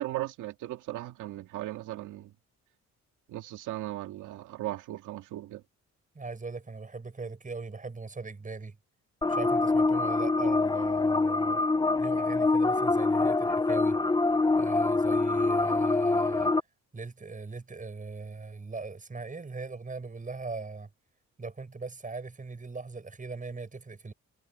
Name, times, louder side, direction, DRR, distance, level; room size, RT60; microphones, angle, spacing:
voice 1, 0.0-2.3 3.3-5.6, right 15 dB, 90° right, 2.1 m, -37 dB
voice 2, 6.1-8.8 9.3-11.6 12.0-14.0 14.6-16.5 16.9-20.9 21.4-24.1, right 4 dB, 25° right, 6.9 m, -40 dB
sound 1, 9.2-16.6, left 3 dB, 15° left, 0.7 m, -25 dB
cardioid pair, 90°, 30 cm